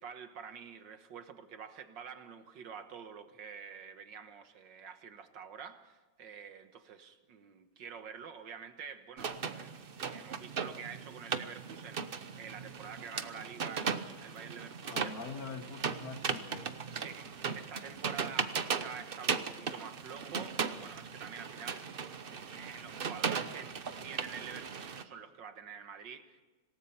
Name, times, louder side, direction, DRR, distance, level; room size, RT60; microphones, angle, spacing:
voice 1, 0.0-15.2 16.9-21.9 22.5-23.8 24.0-26.4, right 7 dB, 65° right, 9 dB, 1.9 m, -48 dB
sound 1, 9.2-25.0, right 6 dB, 50° right, 0.7 m, -38 dB
voice 2, 14.8-17.1, left 5 dB, 50° left, 8 dB, 1.5 m, -45 dB
26.5 x 18.0 x 5.7 m, 1.2 s
omnidirectional pair, 2.2 m